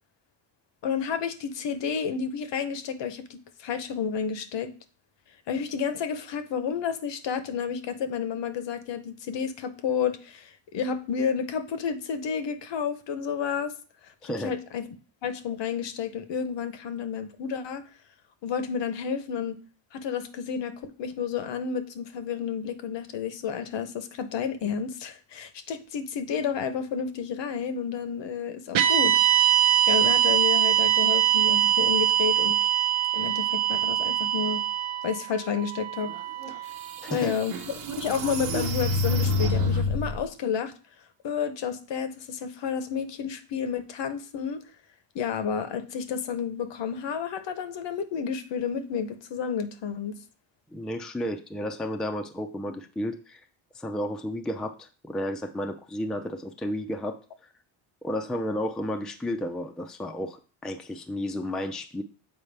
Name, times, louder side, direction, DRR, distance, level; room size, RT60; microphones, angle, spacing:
voice 1, 0.8-4.7 5.5-13.7 14.2-14.8 15.2-17.8 18.4-19.6 19.9-32.6 33.1-34.6 35.0-36.1 37.1-40.7 41.2-44.6 45.1-50.1, left 7 dB, 60° left, 0.8 m, -31 dB
voice 2, 14.2-14.5 37.0-37.3 50.7-53.5 53.7-57.2 58.0-62.0, left 1 dB, ahead, 0.4 m, -32 dB
sound 1, 28.7-37.0, right 11 dB, 70° right, 0.8 m, -23 dB
sound 2, 36.4-36.5 37.1-40.2, left 2 dB, 90° right, 1.2 m, -27 dB
7.2 x 4.5 x 3.3 m
cardioid pair, 100°, 49 cm